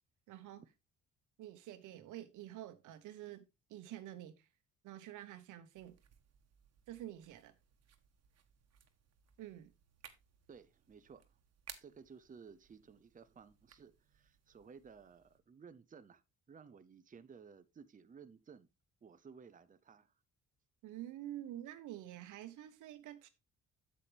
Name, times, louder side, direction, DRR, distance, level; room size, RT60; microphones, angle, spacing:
voice 1, 0.3-0.6 1.4-3.4 3.7-4.5 4.8-6.0 6.9-7.5 9.4-9.7 20.8-23.3, right 13 dB, 90° right, 1.2 m, -48 dB
sound 1, 5.7-15.4, right 8 dB, 55° right, 1.3 m, -61 dB
voice 2, 10.5-11.4 11.8-18.7 19.0-20.1, right 6 dB, 25° right, 0.7 m, -57 dB
8.3 x 7.6 x 3.4 m
cardioid pair, 90°, 30 cm